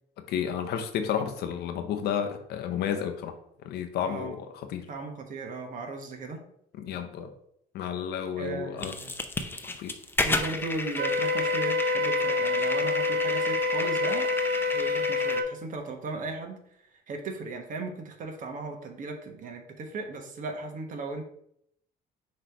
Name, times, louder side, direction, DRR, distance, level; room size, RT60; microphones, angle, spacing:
voice 1, 0.3-3.4 3.6-4.9 6.8-7.3 7.7-9.0 9.8-9.9, left 8 dB, 75° left, 6 dB, 0.7 m, -31 dB
voice 2, 4.0-4.3 4.9-6.4 8.3-9.2 10.2-14.3 14.7-21.2, right 3 dB, 50° right, 4 dB, 1.3 m, -37 dB
sound 1, 8.8-15.4, left 2 dB, 15° left, 0.6 m, -32 dB
Wind instrument woodwind instrument, 11.0-15.5, left 3 dB, 70° right, 0.7 m, -27 dB
5.9 x 3.2 x 4.9 m, 0.72 s
cardioid pair, 110°, 17 cm